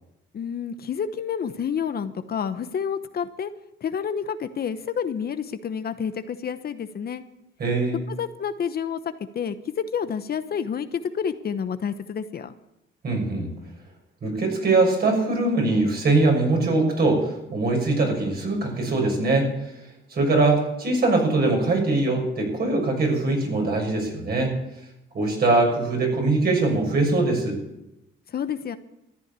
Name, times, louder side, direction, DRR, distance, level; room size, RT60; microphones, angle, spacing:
voice 1, 0.3-3.5 3.8-7.2 8.1-12.5 28.3-28.8, left 7 dB, 50° left, 10 dB, 1.0 m, -29 dB
voice 2, 7.6-8.0 13.0-13.5 14.2-19.5 20.1-24.5 25.1-27.6, right 2 dB, 50° right, 1 dB, 6.4 m, -22 dB
14.0 x 9.9 x 8.3 m, 0.89 s
cardioid pair, 90°, 20 cm